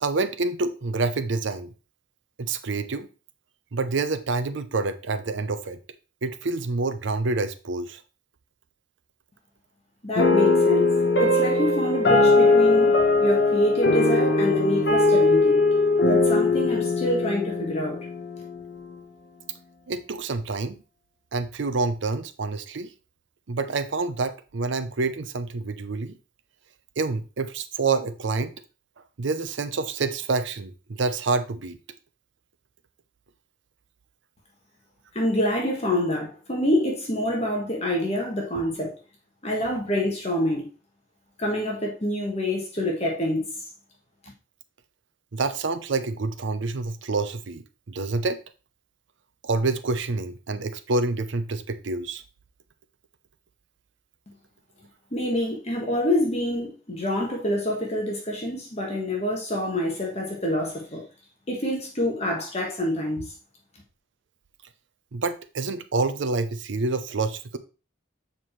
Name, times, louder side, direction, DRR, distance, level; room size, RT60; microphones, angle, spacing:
voice 1, 0.0-1.7 2.4-3.1 3.7-5.8 6.2-8.0 19.9-20.8 21.3-22.9 23.5-26.2 27.0-28.5 29.2-31.8 38.5-38.6 45.3-48.4 49.4-52.2 65.1-67.6, right 3 dB, 65° right, 0.6 m, -27 dB
voice 2, 10.0-10.9 11.2-12.9 13.2-15.6 16.1-18.0 35.1-38.9 39.4-40.7 41.4-43.5 55.1-61.0 61.5-63.2, left 1 dB, 30° left, 1.4 m, -26 dB
sound 1, 10.2-18.7, left 3 dB, 55° left, 1.1 m, -20 dB
7.4 x 4.6 x 3.2 m
head